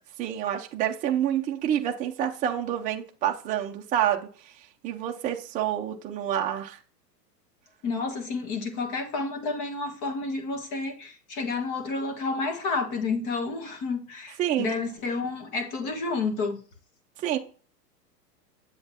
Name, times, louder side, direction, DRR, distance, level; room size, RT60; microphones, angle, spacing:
voice 1, 0.2-4.3 4.8-6.8 14.4-14.8 17.2-17.4, right 10 dB, 15° right, 0.5 m, -28 dB
voice 2, 7.8-16.6, left 3 dB, 40° left, 1.7 m, -30 dB
7.9 x 7.8 x 2.8 m
hypercardioid pair, 115°, 49 cm